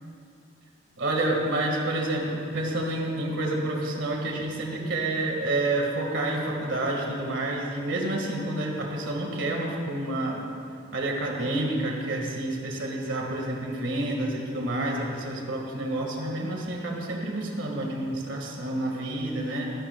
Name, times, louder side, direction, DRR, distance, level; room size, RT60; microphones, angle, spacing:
voice 1, 1.0-10.4 10.9-19.7, right 1 dB, 75° right, -1 dB, 1.9 m, -29 dB
21.5 x 12.0 x 2.4 m, 2.6 s
head